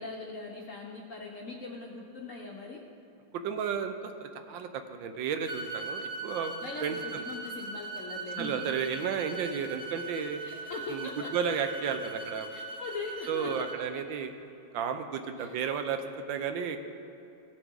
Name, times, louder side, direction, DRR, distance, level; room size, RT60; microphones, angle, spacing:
voice 1, 0.0-2.8 6.4-8.5 10.4-11.3 12.5-13.5 15.4-15.6, left 3 dB, 60° left, 0 dB, 0.8 m, -41 dB
voice 2, 3.3-6.5 6.8-7.2 8.4-10.4 10.9-12.5 13.3-14.3 14.7-16.8, right 7 dB, 80° right, 7 dB, 1.3 m, -33 dB
sound 1, 5.5-13.8, right 3 dB, 55° right, 0.6 m, -40 dB
16.5 x 7.0 x 3.7 m, 2.7 s
omnidirectional pair, 2.1 m